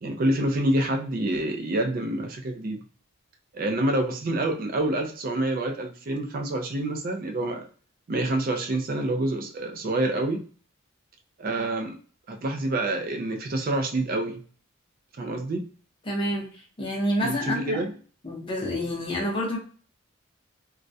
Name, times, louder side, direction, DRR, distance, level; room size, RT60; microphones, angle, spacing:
voice 1, 0.0-2.8 3.5-7.7 8.1-10.4 11.4-12.0 12.3-14.4 15.2-15.7 17.2-17.9, right 1 dB, 45° right, 4 dB, 0.3 m, -27 dB
voice 2, 16.1-16.5 16.8-17.8 18.2-19.6, equal, 25° left, -1 dB, 0.6 m, -28 dB
2.3 x 2.0 x 2.6 m, 0.41 s
head